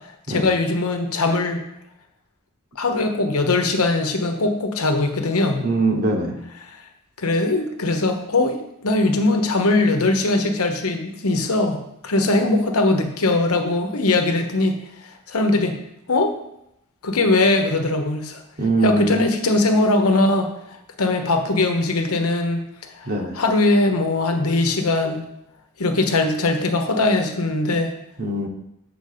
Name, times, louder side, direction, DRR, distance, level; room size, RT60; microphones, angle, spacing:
voice 1, 0.3-1.6 2.8-5.6 7.2-15.7 16.1-16.3 17.0-18.4 18.8-20.5 21.0-22.6 23.0-25.2 25.8-27.9, left 2 dB, 85° left, 5 dB, 1.0 m, -20 dB
voice 2, 5.6-6.4 18.6-19.2 23.1-23.4 28.2-28.5, right 2 dB, 45° right, 3 dB, 1.2 m, -22 dB
6.9 x 4.6 x 6.7 m, 0.84 s
head